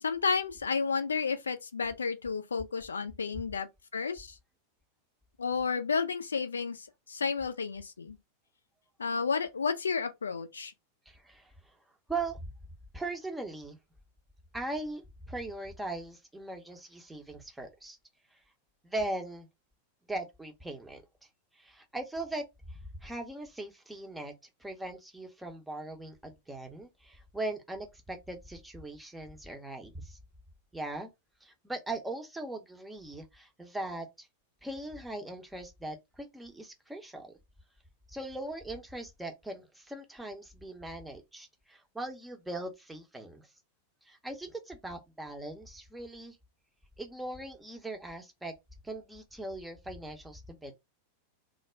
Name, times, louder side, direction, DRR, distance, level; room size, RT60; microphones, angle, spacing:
voice 1, 0.0-3.7 3.9-4.4 5.4-8.2 9.0-10.7, left 5 dB, 75° left, 0.3 m, -31 dB
voice 2, 11.1-11.5 12.1-12.4 12.9-13.8 14.5-15.0 15.3-18.0 18.8-19.5 20.1-21.0 21.6-22.4 22.7-24.3 24.6-30.2 30.7-31.1 31.4-34.3 34.6-37.3 38.1-43.5 44.0-46.4 47.0-48.6 48.8-50.7, right 2 dB, 5° right, 0.6 m, -40 dB
2.3 x 2.0 x 3.2 m
figure-of-eight pair, 90°, 0 cm